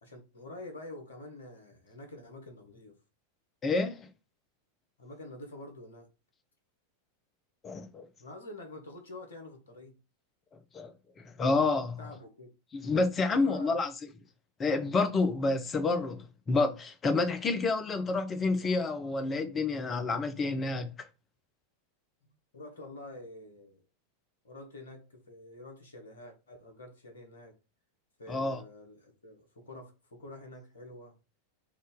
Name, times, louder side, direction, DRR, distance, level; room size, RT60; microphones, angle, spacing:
voice 1, 0.0-3.0 5.0-6.1 8.2-10.0 12.0-12.5 13.3-13.8 22.2-23.8 24.4-27.6 28.2-31.1, left 1 dB, 65° left, 1.2 m, -47 dB
voice 2, 3.6-4.1 7.6-8.1 10.7-12.0 12.7-13.9 14.6-20.9 28.3-28.6, left 3 dB, 20° left, 0.6 m, -29 dB
3.6 x 2.6 x 3.7 m
figure-of-eight pair, 90°, 0 cm